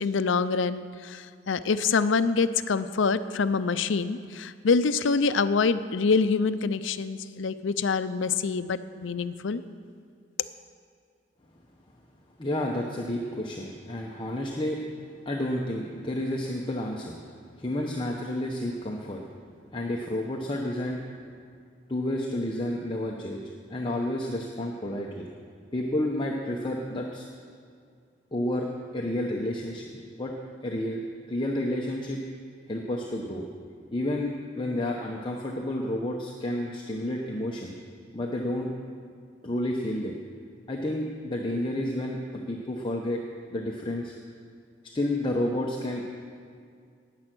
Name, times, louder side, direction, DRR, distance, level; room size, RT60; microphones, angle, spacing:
voice 1, 0.0-9.6, left 4 dB, 80° left, 13 dB, 0.5 m, -26 dB
voice 2, 12.4-14.8 15.2-17.2 17.6-19.2 19.7-21.0 21.9-23.4 23.7-25.3 25.7-27.3 28.3-30.3 30.6-31.0 31.3-32.2 32.7-33.5 33.9-37.8 38.1-38.7 39.4-40.2 40.7-43.2 43.5-44.2 44.9-46.0, left 1 dB, 25° left, -1 dB, 0.9 m, -30 dB
19.0 x 7.7 x 6.1 m, 2.2 s
head